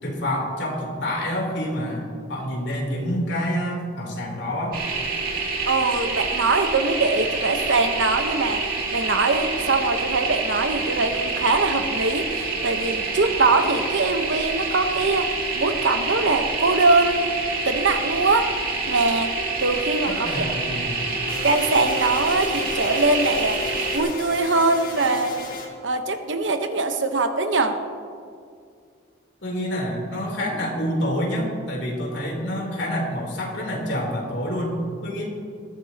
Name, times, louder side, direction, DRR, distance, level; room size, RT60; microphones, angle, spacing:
voice 1, 0.0-4.8 20.1-21.1 29.4-35.3, equal, 65° left, -1 dB, 3.5 m, -27 dB
sound 1, 4.7-24.0, right 3 dB, 45° right, 2.7 m, -27 dB
voice 2, 5.7-8.6 8.9-17.3 17.6-18.6 18.9-20.6 21.4-23.6 23.9-25.4 25.8-27.8, right 3 dB, 75° right, 7 dB, 1.1 m, -22 dB
sound 2, 21.3-25.7, left 3 dB, 45° left, 1.9 m, -35 dB
20.0 x 14.0 x 3.0 m, 2.2 s
head